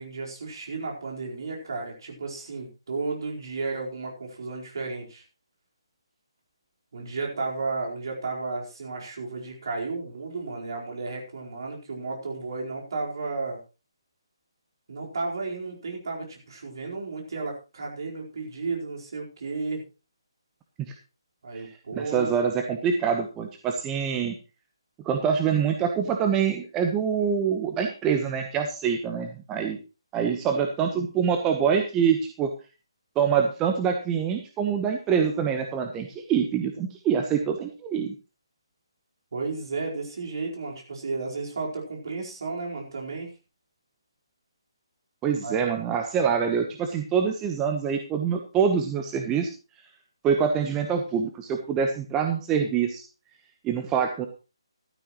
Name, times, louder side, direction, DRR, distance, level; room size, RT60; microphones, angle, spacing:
voice 1, 0.0-5.2 6.9-13.6 14.9-19.8 21.4-22.3 39.3-43.3 45.4-45.6, right 3 dB, 50° right, -1 dB, 4.5 m, -33 dB
voice 2, 22.0-24.4 25.0-29.8 30.1-32.5 33.2-38.1 45.2-49.5 50.2-53.0 53.6-54.3, right 7 dB, 15° right, 4 dB, 1.1 m, -25 dB
15.0 x 12.5 x 3.1 m, 0.31 s
figure-of-eight pair, 145°, 3 cm